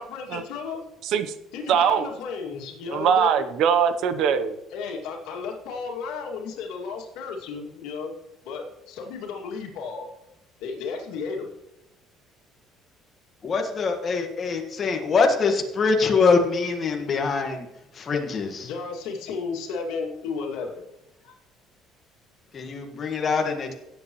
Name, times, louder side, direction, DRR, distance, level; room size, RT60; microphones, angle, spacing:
voice 1, 0.0-0.8 1.5-3.4 4.7-8.1 8.4-10.1 10.6-11.5 18.6-20.8 21.2-21.3, left 5 dB, 85° left, 1 dB, 2.3 m, -33 dB
voice 2, 1.0-1.3 1.7-2.1 2.9-4.6, right 7 dB, 60° right, 11 dB, 0.9 m, -21 dB
voice 3, 13.4-17.7 17.9-18.7 22.5-23.7, left 4 dB, 30° left, 4 dB, 1.6 m, -23 dB
17.0 x 8.1 x 3.1 m, 0.91 s
cardioid pair, 155°, 0 cm